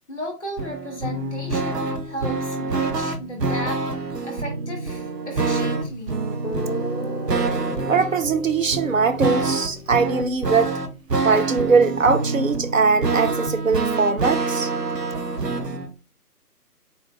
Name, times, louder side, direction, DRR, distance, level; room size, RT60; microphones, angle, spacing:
voice 1, 0.1-6.2, equal, ahead, 0.8 m, -34 dB
sound 1, 0.6-15.9, right 3 dB, 85° right, 0.8 m, -26 dB
Guitar, 5.8-5.9 6.4-10.5, left 1 dB, 30° left, 0.5 m, -36 dB
voice 2, 7.9-10.8 11.2-14.7, right 4 dB, 55° right, 0.6 m, -21 dB
3.9 x 2.3 x 3.8 m
figure-of-eight pair, 150°, 47 cm